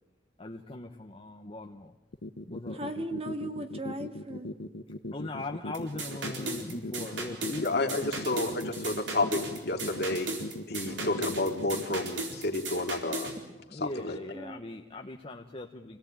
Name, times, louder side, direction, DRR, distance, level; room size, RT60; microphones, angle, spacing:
voice 1, 0.4-1.9 2.5-2.8 5.1-8.0 10.9-11.4 13.7-16.0, left 2 dB, 30° left, 3 dB, 1.0 m, -40 dB
sound 1, 2.1-12.1, left 1 dB, 80° left, 1.0 m, -39 dB
voice 2, 2.7-4.5 14.3-14.6, right 1 dB, 35° right, 6 dB, 1.7 m, -37 dB
sound 2, 5.7-13.4, right 2 dB, 80° right, 4.1 m, -37 dB
voice 3, 7.6-10.4 10.7-13.3 13.8-14.2, left 2 dB, 60° left, 4 dB, 2.3 m, -30 dB
26.0 x 18.0 x 8.9 m, 1.2 s
head